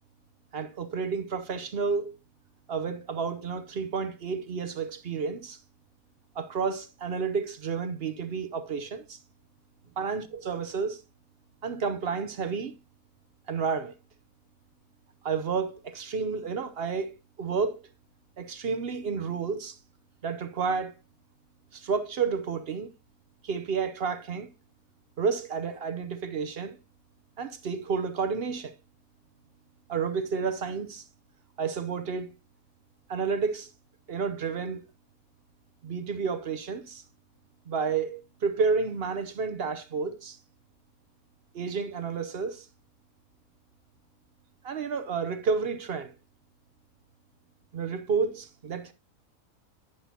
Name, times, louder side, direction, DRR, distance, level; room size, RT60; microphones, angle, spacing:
voice 1, 0.5-2.2 2.7-5.6 6.4-9.2 10.0-11.0 11.6-12.8 13.5-13.9 15.2-17.1 17.4-17.9 18.4-19.8 20.2-20.9 21.7-22.9 23.4-24.5 25.2-26.8 27.4-28.7 29.9-31.0 31.6-32.3 33.1-33.7 34.1-34.8 35.8-37.0 37.7-40.4 41.5-42.7 44.6-46.1 47.7-48.9, right 5 dB, 55° right, 0.8 m, -30 dB
10.0 x 5.9 x 2.7 m
omnidirectional pair, 1.5 m